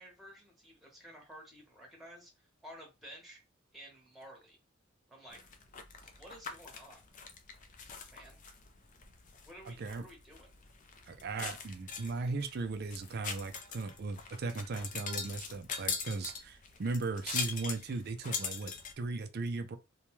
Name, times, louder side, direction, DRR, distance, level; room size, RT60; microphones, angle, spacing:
voice 1, 0.0-3.4 3.7-4.6 5.1-5.5 6.2-7.0 8.1-8.4 9.4-10.5, equal, ahead, 0.9 m, -53 dB
sound 1, 5.3-18.9, left 5 dB, 40° left, 0.4 m, -42 dB
voice 2, 9.7-10.0 11.1-19.8, right 3 dB, 50° right, 0.4 m, -37 dB
2.7 x 2.2 x 3.0 m
head